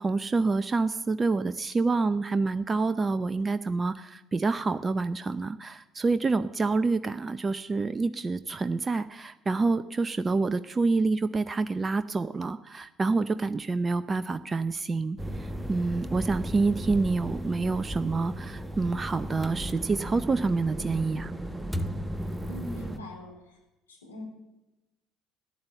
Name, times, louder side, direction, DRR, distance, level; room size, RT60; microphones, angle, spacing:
voice 1, 0.0-21.3, right 3 dB, 25° right, 12 dB, 0.6 m, -27 dB
sound 1, 15.2-23.0, equal, 10° right, 1.2 m, -35 dB
voice 2, 22.5-23.6 23.9-24.2, left 1 dB, 85° left, 0 dB, 3.5 m, -42 dB
14.5 x 10.5 x 8.0 m, 0.99 s
figure-of-eight pair, 55°, 0 cm